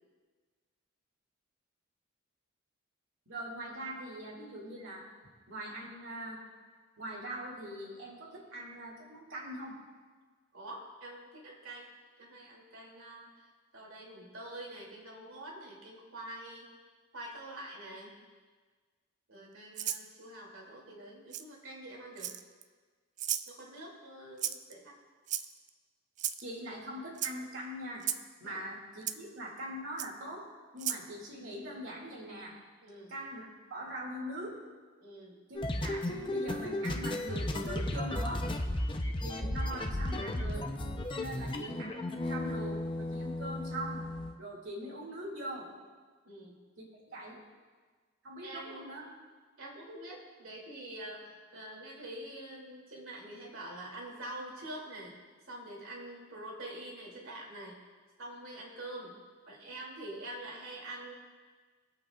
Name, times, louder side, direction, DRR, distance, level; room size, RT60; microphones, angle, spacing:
voice 1, 3.3-5.1 5.5-6.4 7.0-9.8 26.4-28.1 28.4-30.5 30.7-32.6 33.1-34.6 35.5-38.5 39.2-40.7 41.1-44.0 44.4-45.7 47.1-47.4 48.2-49.1, right 1 dB, 65° right, -4 dB, 2.4 m, -42 dB
voice 2, 10.5-11.9 12.2-16.7 17.1-18.1 19.3-22.3 23.5-25.0 28.4-28.6 32.8-33.1 35.0-35.4 46.2-46.6 48.4-49.0 49.6-55.2 55.5-57.8 58.2-59.2 59.5-61.1, right 1 dB, 85° right, -2 dB, 2.7 m, -46 dB
Rattle (instrument), 19.7-20.0 21.3-21.4 22.2-22.6 23.2-23.5 24.4-24.7 25.3-25.7 26.2-26.4 27.1-27.3 28.0-28.2 29.1-29.2 30.0-30.1 30.8-31.0, right 11 dB, 35° right, 0.3 m, -34 dB
sound 1, 35.6-44.3, left 1 dB, 25° left, 0.6 m, -34 dB
24.0 x 8.3 x 2.4 m, 1.5 s
head